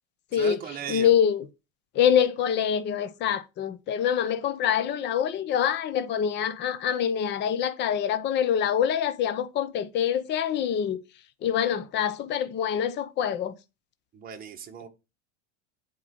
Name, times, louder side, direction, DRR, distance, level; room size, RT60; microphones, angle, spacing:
voice 1, 0.3-1.1 14.1-14.9, right 8 dB, 25° right, 1.4 m, -37 dB
voice 2, 0.9-1.4 1.9-11.0 11.4-13.5, left 9 dB, 30° left, 0.8 m, -25 dB
8.2 x 4.0 x 6.9 m
supercardioid pair, 155°, 35 cm